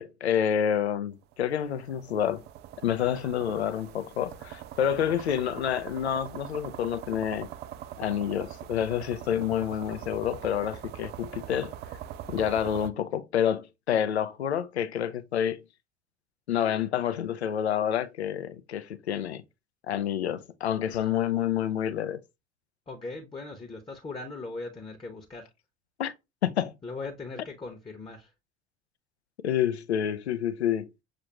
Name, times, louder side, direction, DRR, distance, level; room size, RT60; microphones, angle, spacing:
voice 1, 0.0-2.4 2.8-7.5 8.0-11.7 12.3-15.6 16.5-19.4 19.9-22.2 26.0-26.1 26.4-26.7 29.4-30.9, left 9 dB, 80° left, 0.5 m, -28 dB
sound 1, 1.3-12.9, right 11 dB, 30° right, 0.4 m, -42 dB
voice 2, 22.9-25.5 26.8-28.3, left 3 dB, 15° left, 0.8 m, -39 dB
6.5 x 2.5 x 2.8 m
figure-of-eight pair, 65°, 32 cm